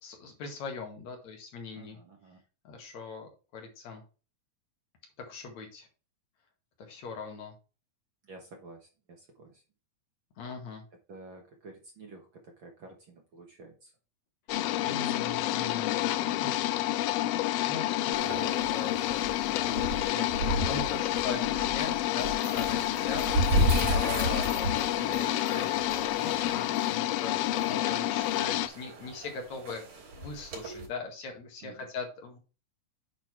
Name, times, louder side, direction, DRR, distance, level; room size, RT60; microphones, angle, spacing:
voice 1, 0.0-2.0 2.6-4.0 5.3-5.9 6.8-7.5 10.4-10.8 14.8-16.1 16.4-16.5 17.3-23.4 23.9-27.3 27.7-29.8 30.1-32.4, left 4 dB, 65° left, 3 dB, 3.0 m, -40 dB
voice 2, 1.7-2.4 8.3-9.6 11.1-13.9 14.9-15.1 15.5-15.6 31.6-31.9, right 3 dB, 50° right, 2 dB, 1.7 m, -50 dB
sound 1, 14.5-28.7, left 15 dB, 85° left, 1.4 m, -29 dB
sound 2, 18.1-30.9, right 1 dB, 70° right, 4.0 m, -34 dB
8.8 x 4.0 x 4.6 m, 0.34 s
omnidirectional pair, 3.5 m